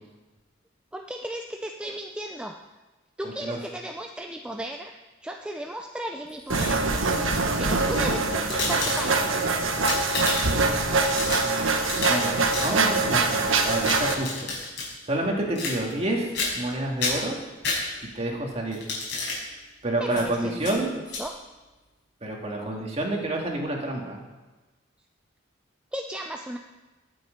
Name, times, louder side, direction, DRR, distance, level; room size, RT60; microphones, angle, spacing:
voice 1, 0.9-2.6 3.2-6.9 7.6-9.4 20.0-21.4 25.9-26.6, right 1 dB, 5° right, 3 dB, 0.5 m, -35 dB
voice 2, 3.2-3.6 12.1-14.5 15.0-17.4 18.1-18.8 19.8-21.0 22.2-24.2, right 1 dB, 30° right, 0 dB, 2.2 m, -29 dB
sound 1, 6.3-7.0 7.7-9.3 9.7-10.6 11.0-12.2 12.5-12.7 13.6-14.9 15.5-16.1 16.3-16.7 17.0-18.2 18.7-19.4 20.1-20.2 20.6-20.7 21.1-21.2, left 3 dB, 60° left, 5.3 m, -31 dB
sound 2, 6.5-14.1, right 3 dB, 85° right, 1.3 m, -24 dB
19.5 x 7.7 x 5.2 m, 1.2 s
head